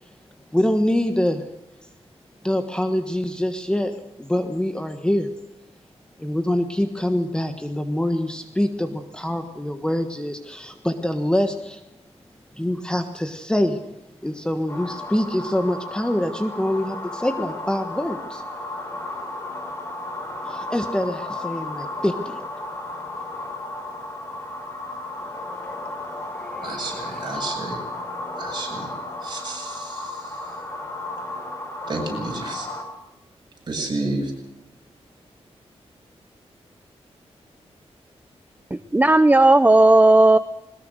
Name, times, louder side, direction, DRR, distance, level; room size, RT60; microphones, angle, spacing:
voice 1, 0.5-1.4 2.4-3.9 4.2-5.3 6.2-11.8 12.6-13.8 14.2-18.4 19.8-19.9 20.4-22.4 26.4-27.5, left 1 dB, 5° left, 7 dB, 1.5 m, -25 dB
sound 1, 14.7-32.8, left 2 dB, 25° left, 4.3 m, -34 dB
voice 2, 26.6-27.8 28.4-28.9 29.2-30.1 31.9-32.7 33.7-34.3, right 2 dB, 40° right, 0 dB, 7.7 m, -30 dB
voice 3, 38.7-40.4, right 2 dB, 15° right, 12 dB, 0.6 m, -14 dB
21.5 x 20.0 x 6.5 m, 0.90 s
wide cardioid pair, 125°, 11 cm